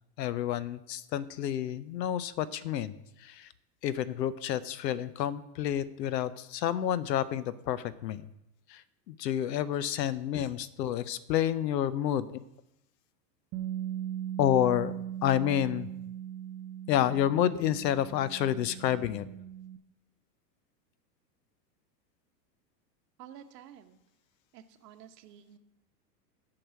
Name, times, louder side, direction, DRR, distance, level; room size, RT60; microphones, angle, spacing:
voice 1, 0.2-3.5 3.8-8.3 8.7-12.4 14.4-14.9 15.2-15.9 16.9-19.3, left 11 dB, 80° left, 16 dB, 0.8 m, -29 dB
Bass guitar, 13.5-19.8, right 10 dB, 30° right, 0.6 m, -39 dB
voice 2, 23.2-24.0 24.5-25.6, right 9 dB, 70° right, 8 dB, 1.2 m, -51 dB
8.6 x 4.8 x 7.6 m, 0.86 s
supercardioid pair, 135°, 49 cm